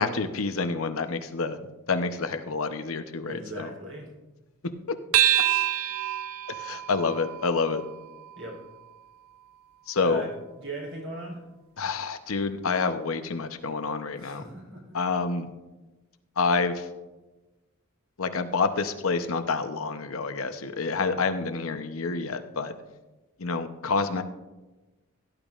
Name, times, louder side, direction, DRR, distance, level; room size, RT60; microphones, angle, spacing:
voice 1, 0.0-1.6 1.9-3.7 4.9-5.0 6.5-7.8 9.9-10.2 11.8-14.4 14.9-15.5 16.4-16.9 18.2-22.7 23.4-24.2, left 4 dB, 90° left, 9 dB, 0.8 m, -28 dB
voice 2, 3.2-4.1 8.3-8.6 10.0-10.3 10.6-11.4 14.2-15.0, right 1 dB, 60° right, 0 dB, 3.4 m, -38 dB
sound 1, 5.1-9.9, right 12 dB, 90° right, 0.6 m, -28 dB
17.5 x 11.0 x 2.5 m, 1.1 s
head